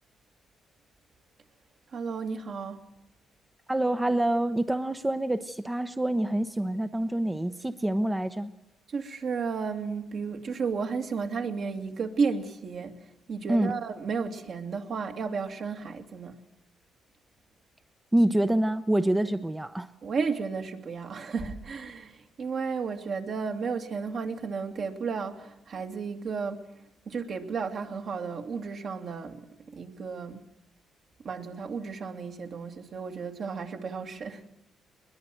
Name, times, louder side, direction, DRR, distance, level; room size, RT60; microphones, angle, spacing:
voice 1, 1.9-2.9 8.9-16.4 20.0-26.7 27.1-30.4 31.2-34.5, right 5 dB, 55° right, 2.4 m, -33 dB
voice 2, 3.7-8.5 13.5-13.7 18.1-19.9, right 1 dB, 10° right, 0.8 m, -26 dB
21.0 x 21.0 x 7.8 m
cardioid pair, 90°, 0 cm